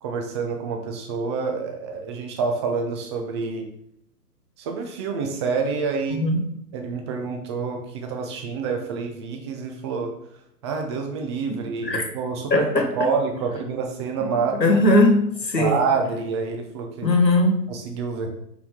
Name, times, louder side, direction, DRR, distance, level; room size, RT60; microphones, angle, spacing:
voice 1, 0.0-3.7 4.6-6.2 6.7-10.1 10.6-14.8 15.6-17.1 17.7-18.4, right 4 dB, 20° right, 0.6 m, -27 dB
voice 2, 12.5-12.8 14.6-15.8 17.0-17.6, left 1 dB, 85° left, 1.5 m, -18 dB
5.8 x 5.7 x 3.7 m
figure-of-eight pair, 120°, 48 cm